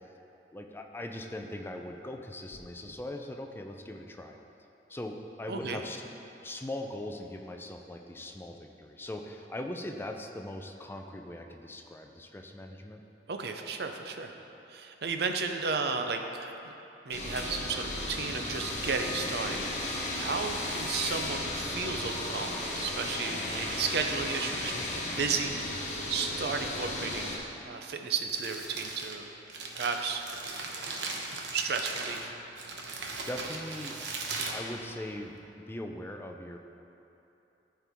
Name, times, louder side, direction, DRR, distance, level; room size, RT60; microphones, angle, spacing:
voice 1, 0.5-4.4 4.9-6.1 6.4-13.0 24.7-24.8 33.3-35.4 35.7-36.6, left 1 dB, 15° left, 3 dB, 0.4 m, -40 dB
sound 1, 2.5-3.0, left 1 dB, 75° left, 0.8 m, -54 dB
voice 2, 5.5-5.8 13.3-14.4 14.7-16.5 17.0-27.4 27.6-29.3 29.7-30.2 31.0-31.2 31.5-32.3, right 5 dB, 65° right, 5 dB, 0.6 m, -34 dB
sound 2, 17.1-27.4, left 1 dB, 40° left, 1.2 m, -35 dB
Crumpling crinkling, 28.1-35.4, right 3 dB, 85° right, 0.9 m, -39 dB
13.5 x 4.5 x 3.5 m, 3.0 s
head